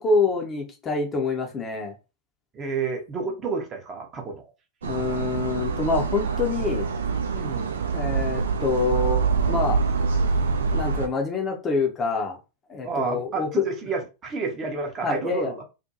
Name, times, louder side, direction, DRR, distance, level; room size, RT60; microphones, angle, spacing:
voice 1, 0.0-1.9 4.8-6.9 7.9-9.2 9.5-9.8 10.7-12.4 12.7-13.7 15.0-15.5, left 4 dB, 20° left, 0.6 m, -26 dB
voice 2, 2.5-4.4 7.3-7.7 12.8-15.6, right 4 dB, 25° right, 0.7 m, -30 dB
sound 1, 4.8-11.1, right 5 dB, 65° right, 0.4 m, -25 dB
2.4 x 2.2 x 2.8 m
figure-of-eight pair, 90°, 0 cm